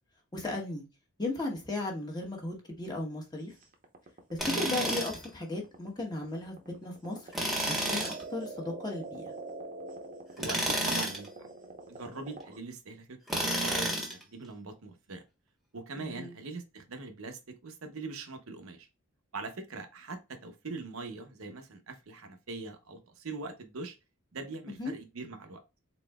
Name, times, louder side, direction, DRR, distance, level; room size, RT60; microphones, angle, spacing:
voice 1, 0.3-0.8 1.2-3.5 4.3-7.3 7.9-9.3 16.0-16.4 24.7-24.9, left 2 dB, 20° left, 1.1 m, -36 dB
sound 1, 3.6-12.6, right 3 dB, 40° right, 0.8 m, -44 dB
Tools, 4.4-5.2 7.3-8.2 10.4-11.3 13.3-14.2, right 1 dB, ahead, 1.1 m, -30 dB
voice 2, 10.4-11.3 11.9-15.2 15.7-18.9 19.3-24.0 24.3-25.6, right 3 dB, 70° right, 0.8 m, -42 dB
4.1 x 3.8 x 2.2 m
head